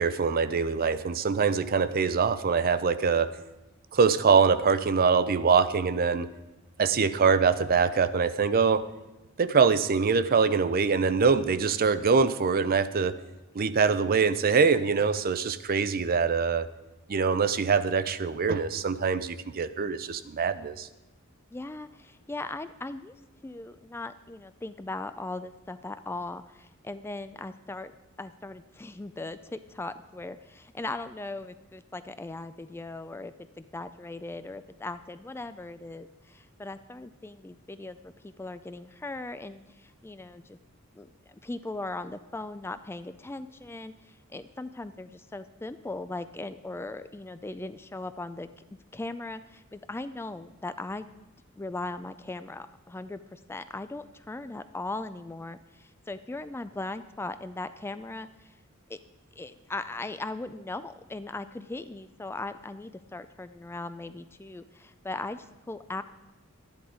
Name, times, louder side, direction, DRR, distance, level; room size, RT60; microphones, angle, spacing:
voice 1, 0.0-3.3 3.9-6.3 6.8-8.8 9.4-13.2 13.5-16.7 17.1-20.9, right 5 dB, 45° right, 14 dB, 0.5 m, -24 dB
voice 2, 21.5-23.1 23.4-27.9 28.2-40.6 40.9-48.5 48.9-51.1 51.6-58.6 58.9-59.0 59.4-66.0, left 2 dB, 10° left, 11 dB, 0.3 m, -39 dB
12.0 x 10.5 x 4.9 m, 1.0 s
head